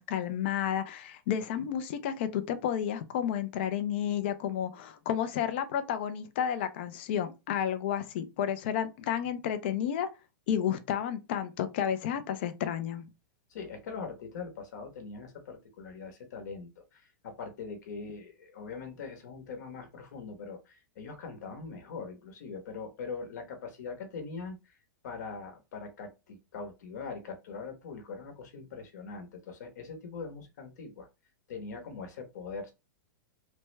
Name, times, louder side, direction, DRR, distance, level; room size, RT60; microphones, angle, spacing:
voice 1, 0.0-10.1 10.5-13.0, left 9 dB, 30° left, 0.3 m, -31 dB
voice 2, 13.5-24.6 25.0-31.1 31.5-32.7, left 4 dB, 55° left, 0.9 m, -42 dB
3.3 x 2.1 x 3.1 m
supercardioid pair, 180°, 11 cm